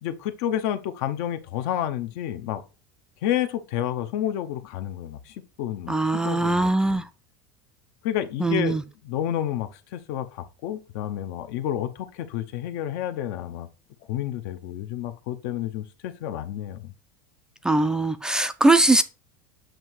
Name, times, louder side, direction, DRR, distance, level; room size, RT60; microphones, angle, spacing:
voice 1, 0.0-2.6 3.2-7.0 8.0-8.8 9.0-13.7 14.1-16.9, left 11 dB, 65° left, 0.7 m, -30 dB
voice 2, 5.9-7.0 8.4-8.8 17.6-19.0, right 2 dB, 5° right, 0.3 m, -21 dB
7.5 x 2.7 x 4.6 m
supercardioid pair, 135°, 11 cm